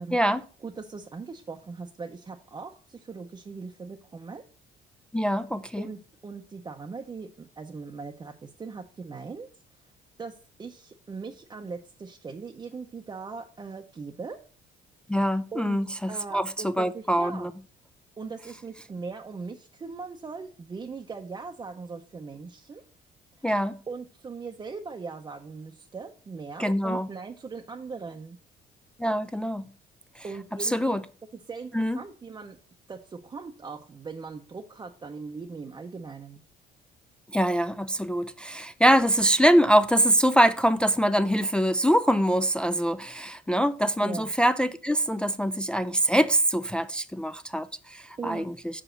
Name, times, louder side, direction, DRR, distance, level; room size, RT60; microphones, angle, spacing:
voice 1, 0.1-0.4 5.1-5.9 15.1-17.5 23.4-23.8 26.6-27.1 29.0-29.7 30.2-30.3 30.6-31.0 31.7-32.0 37.3-48.8, equal, 5° left, 0.3 m, -24 dB
voice 2, 0.6-4.4 5.8-9.5 10.2-14.4 15.5-15.8 16.1-17.5 18.2-22.8 23.4-23.5 23.9-28.4 30.2-31.0 31.3-32.6 32.9-36.4 44.0-44.3 48.2-48.5, right 4 dB, 25° right, 0.6 m, -40 dB
5.5 x 5.0 x 6.3 m
cardioid pair, 110°, 17 cm